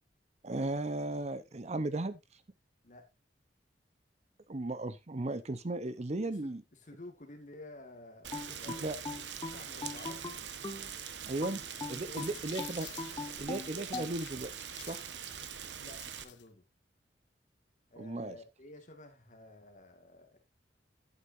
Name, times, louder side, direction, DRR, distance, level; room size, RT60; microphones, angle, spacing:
voice 1, 0.4-2.2 4.5-6.6 8.8-9.0 11.3-11.6 11.9-12.9 13.4-14.5 14.9-15.0 18.0-18.3, right 2 dB, 40° right, 0.7 m, -36 dB
voice 2, 6.2-9.1 9.4-10.2 11.9-12.4 13.6-14.1 15.8-16.6 17.9-20.4, left 2 dB, 45° left, 1.9 m, -52 dB
Rain, 8.2-16.2, right 8 dB, 90° right, 1.1 m, -43 dB
sound 1, 8.3-10.9 11.4-14.1, left 3 dB, 25° left, 0.8 m, -41 dB
sound 2, 11.8-16.5, left 12 dB, 85° left, 1.0 m, -52 dB
11.5 x 9.1 x 2.6 m
head